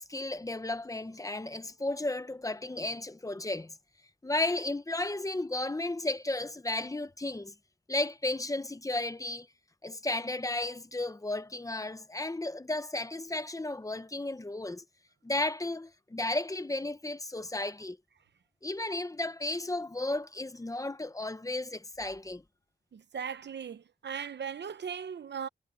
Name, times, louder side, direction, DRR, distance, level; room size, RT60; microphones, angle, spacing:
voice 1, 0.0-3.7 4.2-7.5 7.9-9.5 9.8-14.8 15.2-18.0 18.6-22.4, left 2 dB, 20° left, 0.9 m, -34 dB
voice 2, 22.9-25.5, right 7 dB, 75° right, 0.8 m, -38 dB
wide cardioid pair, 105°, 18 cm